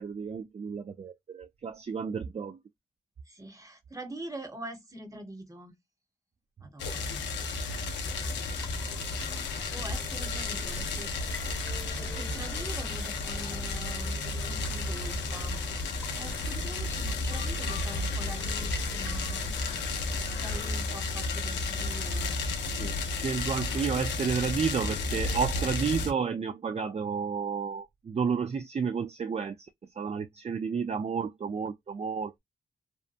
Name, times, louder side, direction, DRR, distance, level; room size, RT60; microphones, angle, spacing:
voice 1, 0.0-2.6 22.8-29.6 30.0-32.4, right 6 dB, 35° right, 0.4 m, -31 dB
voice 2, 3.3-5.7 6.6-7.2 9.7-11.1 12.0-15.6 16.2-19.4 20.2-22.4, right 1 dB, 20° right, 1.1 m, -44 dB
sound 1, 6.8-26.1, left 3 dB, 85° left, 0.6 m, -32 dB
sound 2, 8.0-20.7, left 1 dB, 15° left, 0.9 m, -43 dB
2.7 x 2.1 x 2.5 m
supercardioid pair, 50°, 18 cm